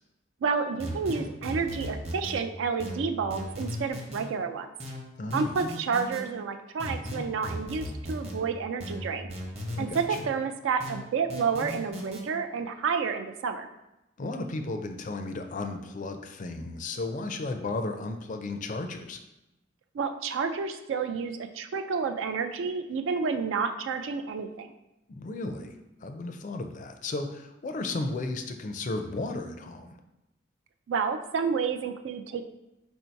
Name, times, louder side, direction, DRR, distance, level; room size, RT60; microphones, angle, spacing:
voice 1, 0.4-4.7 5.3-9.3 9.8-13.7 19.9-24.7 30.9-32.4, right 5 dB, 75° right, 7 dB, 0.3 m, -30 dB
sound 1, 0.8-2.4 2.8-4.2 4.8-6.2 6.8-8.4 8.8-10.2 10.8-12.2, equal, 35° right, 0.8 m, -36 dB
voice 2, 5.2-5.6 9.8-10.2 14.2-19.2 25.1-25.7 26.0-30.0, left 2 dB, 40° left, 6 dB, 0.4 m, -34 dB
4.5 x 2.7 x 4.4 m, 0.94 s
head